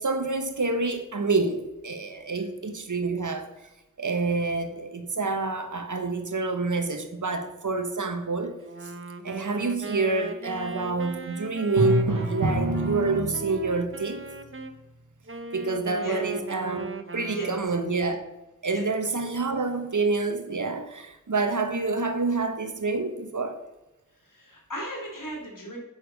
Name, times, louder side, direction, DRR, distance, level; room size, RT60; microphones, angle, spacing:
voice 1, 0.0-3.5 4.0-8.9 9.2-14.2 15.5-18.2 18.6-23.6, right 3 dB, 65° right, 1.4 m, -28 dB
Wind instrument woodwind instrument, 8.6-14.8 15.3-17.9, right 4 dB, 40° right, 1.2 m, -38 dB
Drum, 11.8-13.8, right 1 dB, 80° right, 1.6 m, -26 dB
voice 2, 24.4-25.8, right 1 dB, 75° left, 3.6 m, -35 dB
8.7 x 7.7 x 6.5 m
wide cardioid pair, 45°, 32 cm